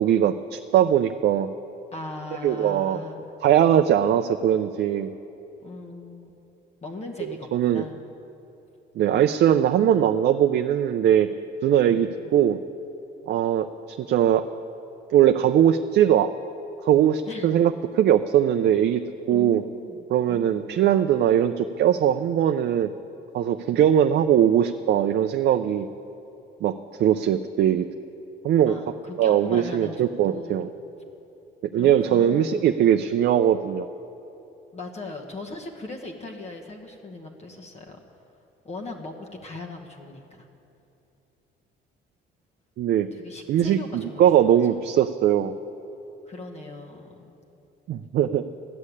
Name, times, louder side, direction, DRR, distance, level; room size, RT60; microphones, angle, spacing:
voice 1, 0.0-1.5 2.4-3.0 3.4-5.1 7.5-7.8 9.0-11.3 11.6-12.6 13.3-14.4 15.1-16.3 16.8-19.0 19.3-19.6 20.1-22.9 23.3-25.9 26.6-26.7 27.0-27.9 28.4-28.7 29.2-30.7 31.7-33.9 42.8-43.1 43.5-45.5 47.9-48.4, right 10 dB, 60° right, 8 dB, 0.4 m, -20 dB
voice 2, 1.9-3.3 5.6-6.4 6.8-8.0 11.9-12.4 17.3-17.5 19.3-20.9 28.7-30.7 31.7-32.6 34.7-38.0 38.6-40.5 43.1-44.6 46.2-47.4, left 2 dB, 35° left, 1 dB, 1.2 m, -39 dB
13.0 x 6.5 x 9.8 m, 2.9 s
cardioid pair, 105°, 20 cm